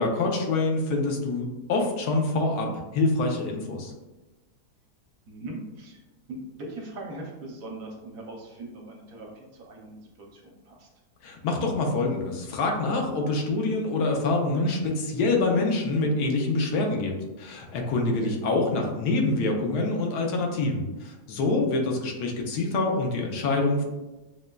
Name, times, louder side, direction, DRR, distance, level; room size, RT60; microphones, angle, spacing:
voice 1, 0.0-3.9 11.2-23.8, left 2 dB, 85° left, 1 dB, 1.2 m, -26 dB
voice 2, 5.3-6.0 6.3-10.9 18.2-18.3, right 2 dB, 65° right, 0 dB, 1.0 m, -40 dB
6.2 x 2.1 x 2.2 m, 1.1 s
omnidirectional pair, 1.7 m